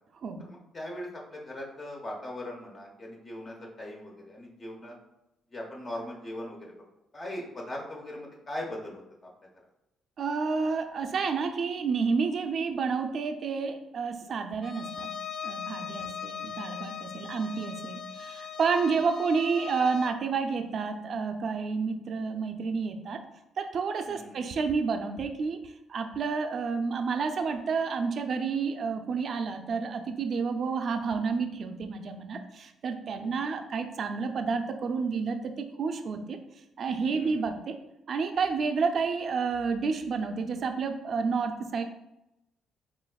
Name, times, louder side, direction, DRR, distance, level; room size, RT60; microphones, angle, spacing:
voice 1, 0.4-5.0 5.5-6.9 7.1-9.3 16.0-16.2 24.1-24.4 33.5-33.7 37.2-37.5, left 1 dB, 40° left, -2 dB, 0.9 m, -40 dB
voice 2, 10.2-15.1 15.4-23.2 23.6-35.5 35.8-36.4 36.8-37.7 38.1-41.8, right 5 dB, 55° right, 6 dB, 0.5 m, -30 dB
Bowed string instrument, 14.6-20.2, left 7 dB, 65° left, 0.4 m, -39 dB
7.3 x 2.5 x 2.3 m, 0.90 s
cardioid pair, 90°, 0 cm